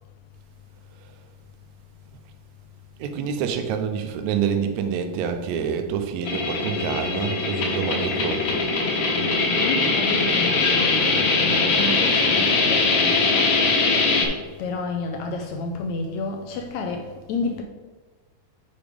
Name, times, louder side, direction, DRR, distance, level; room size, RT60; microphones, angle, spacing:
voice 1, 3.0-8.6, right 7 dB, 75° right, 1.9 m, -27 dB
sound 1, 6.2-14.3, left 3 dB, 65° left, 2.6 m, -21 dB
voice 2, 9.6-13.5 14.6-17.6, left 3 dB, 80° left, 1.6 m, -31 dB
6.8 x 4.9 x 5.2 m
omnidirectional pair, 3.8 m